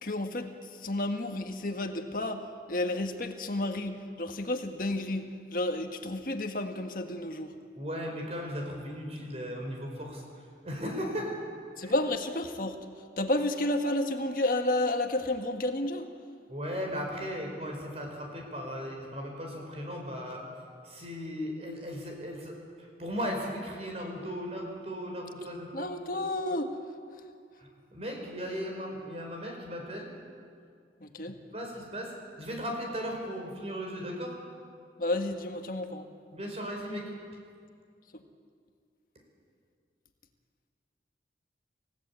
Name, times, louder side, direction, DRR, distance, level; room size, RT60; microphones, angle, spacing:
voice 1, 0.0-7.5 11.8-12.9 13.2-16.1 25.7-26.8 31.0-31.4 35.0-36.1 38.1-38.2, left 1 dB, 50° left, 5 dB, 1.6 m, -31 dB
voice 2, 7.7-11.4 11.8-12.0 16.5-20.4 20.8-25.9 27.6-30.1 31.3-34.3 36.3-37.1, equal, 35° right, 1 dB, 5.1 m, -37 dB
29.0 x 17.0 x 8.4 m, 2.3 s
head